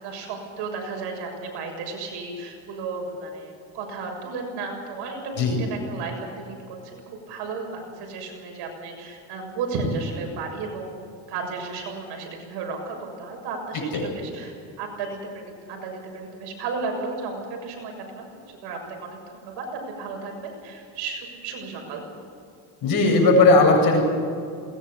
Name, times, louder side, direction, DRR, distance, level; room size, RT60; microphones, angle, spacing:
voice 1, 0.0-11.0 11.3-22.1, right 4 dB, 75° right, 2 dB, 6.9 m, -34 dB
voice 2, 13.7-14.1 22.8-24.0, left 3 dB, 55° left, 2 dB, 7.7 m, -17 dB
21.5 x 19.5 x 8.4 m, 2.4 s
cardioid pair, 110°, 41 cm